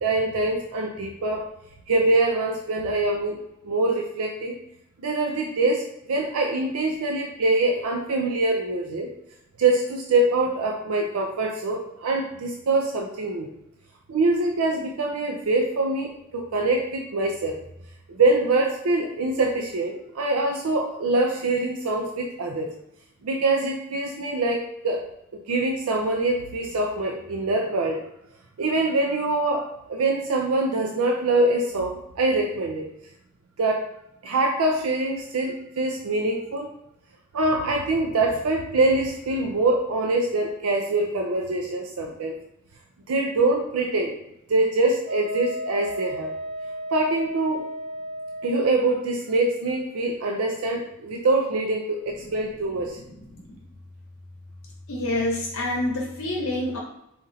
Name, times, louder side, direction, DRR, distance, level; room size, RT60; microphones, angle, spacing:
voice 1, 0.0-1.4 1.9-3.4 3.6-4.5 5.0-9.1 9.6-13.5 14.1-17.6 18.1-22.7 23.2-25.0 25.3-28.0 28.6-32.8 33.6-33.8 34.2-36.7 37.3-42.4 43.1-44.2 44.5-46.3 46.9-47.6 48.4-53.0, right 2 dB, 90° right, 1 dB, 0.5 m, -24 dB
Wind instrument woodwind instrument, 45.0-48.7, equal, 35° right, 0.3 m, -34 dB
voice 2, 52.9-53.6 54.9-56.8, left 1 dB, 80° left, -2 dB, 0.8 m, -28 dB
4.2 x 2.5 x 4.0 m, 0.84 s
head